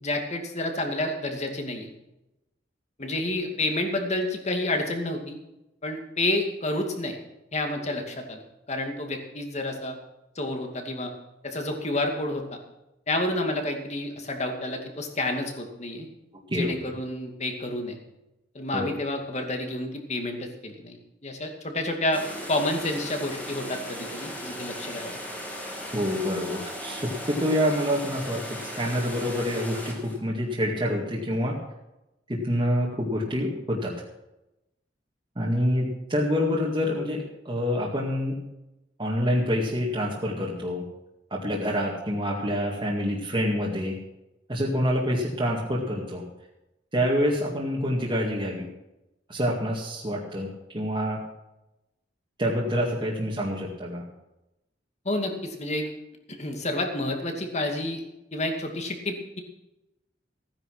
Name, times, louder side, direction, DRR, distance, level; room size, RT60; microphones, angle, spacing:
voice 1, 0.0-1.9 3.0-5.4 5.8-7.2 7.5-8.4 8.7-9.9 10.4-11.1 11.4-12.4 13.1-16.1 16.5-18.0 18.5-21.0 21.2-22.2 22.5-25.2 55.0-55.9 56.4-58.0 58.3-59.4, left 1 dB, 40° left, 3 dB, 2.3 m, -29 dB
sound 1, 22.1-30.2, equal, 10° left, 2.7 m, -37 dB
voice 2, 25.9-31.6 32.3-33.9 35.4-38.4 39.0-40.8 41.3-44.0 44.5-46.2 46.9-48.7 49.3-50.5 50.7-51.2 52.4-54.0, equal, 25° right, -4 dB, 2.2 m, -27 dB
16.0 x 9.9 x 6.1 m, 0.94 s
head